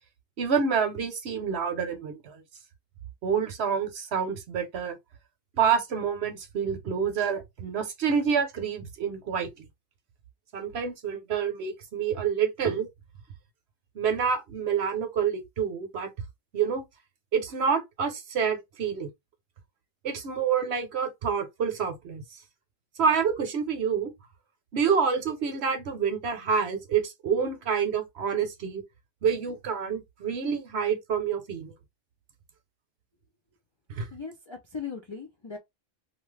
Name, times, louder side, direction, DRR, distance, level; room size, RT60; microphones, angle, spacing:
voice 1, 0.4-2.4 3.2-5.0 5.6-9.7 10.5-12.9 13.9-16.1 16.5-16.9 17.3-19.1 20.0-22.2 23.0-24.1 24.7-28.8 29.2-31.7 33.9-34.1, right 6 dB, 60° right, 0.9 m, -27 dB
voice 2, 34.1-35.6, left 5 dB, 45° left, 0.3 m, -38 dB
2.8 x 2.4 x 3.1 m
omnidirectional pair, 1.3 m